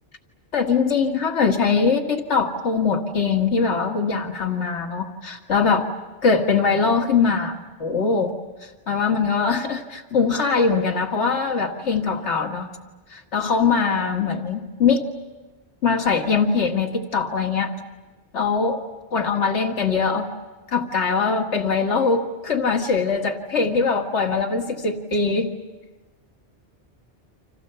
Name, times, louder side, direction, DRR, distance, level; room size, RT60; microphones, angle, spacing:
voice 1, 0.5-5.9 6.2-8.3 8.6-12.7 13.1-15.0 15.8-17.8 18.3-18.8 19.1-20.3 20.7-25.5, left 5 dB, 85° left, 4 dB, 2.0 m, -22 dB
29.5 x 27.0 x 6.8 m, 1.2 s
omnidirectional pair, 1.1 m